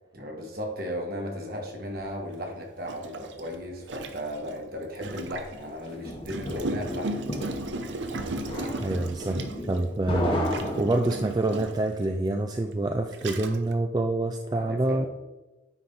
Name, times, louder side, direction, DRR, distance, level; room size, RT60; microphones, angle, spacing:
voice 1, 0.1-7.1 14.5-15.1, equal, 50° right, 1 dB, 1.5 m, -35 dB
Gurgling, 2.0-2.1 2.9-5.6 6.2-9.8 10.5-11.9 12.6-12.7 13.1-13.7, right 2 dB, 80° right, 0.7 m, -35 dB
sound 1, 5.6-11.5, left 1 dB, 30° left, 1.1 m, -34 dB
voice 2, 8.8-9.4 9.7-15.1, right 2 dB, 20° right, 4 dB, 0.3 m, -27 dB
9.5 x 4.3 x 3.9 m, 1.1 s
head